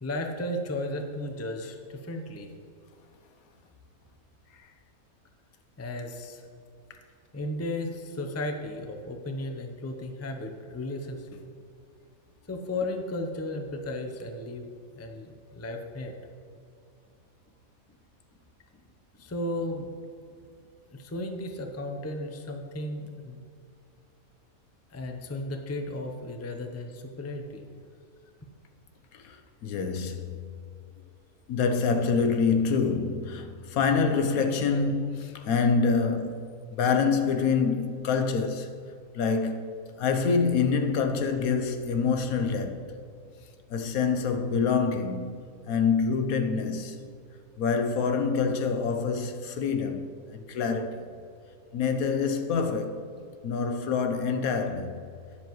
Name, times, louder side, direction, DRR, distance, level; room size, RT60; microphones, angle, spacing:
voice 1, 0.0-2.5 5.8-6.5 7.3-11.4 12.5-14.7 15.0-16.1 19.1-20.0 20.9-23.4 24.9-27.6, left 1 dB, 15° left, 0.5 m, -34 dB
voice 2, 29.1-30.6 31.5-36.4 36.7-38.7 39.1-42.9 43.7-47.0 47.6-51.1 51.7-53.0 53.4-55.0, left 5 dB, 80° left, 1.2 m, -26 dB
12.0 x 10.0 x 3.1 m
omnidirectional pair, 1.5 m